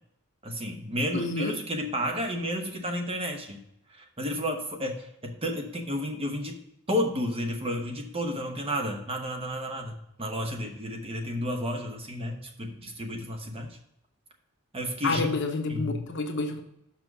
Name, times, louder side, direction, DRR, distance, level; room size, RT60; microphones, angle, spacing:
voice 1, 0.4-3.6 3.9-6.6 6.9-13.8 14.7-15.3 15.7-16.1, equal, 25° right, 3 dB, 0.9 m, -32 dB
voice 2, 1.1-1.6 15.0-16.6, left 3 dB, 55° left, 4 dB, 0.9 m, -29 dB
6.1 x 5.9 x 4.6 m, 0.80 s
head